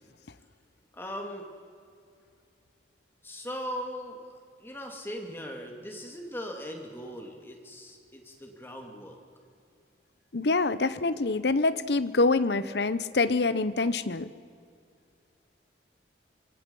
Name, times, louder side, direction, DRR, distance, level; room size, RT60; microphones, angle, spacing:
voice 1, 0.9-1.5 3.2-4.3 4.6-9.2, equal, 10° left, 2 dB, 2.5 m, -39 dB
voice 2, 10.3-14.3, left 3 dB, 65° left, 14 dB, 0.8 m, -25 dB
24.5 x 24.0 x 5.5 m, 2.4 s
head